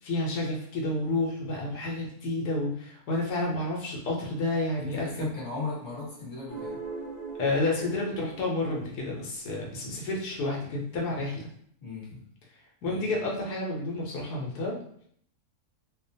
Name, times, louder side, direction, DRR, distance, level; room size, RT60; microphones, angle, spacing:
voice 1, 0.0-5.3 7.4-11.5 12.8-14.8, left 2 dB, 85° left, -2 dB, 1.2 m, -30 dB
voice 2, 4.8-6.8 11.8-12.2 12.8-13.0, left 4 dB, 35° left, -6 dB, 1.2 m, -37 dB
sound 1, 6.5-9.8, right 4 dB, 10° left, 0.8 m, -41 dB
2.8 x 2.1 x 2.5 m, 0.64 s
omnidirectional pair, 1.6 m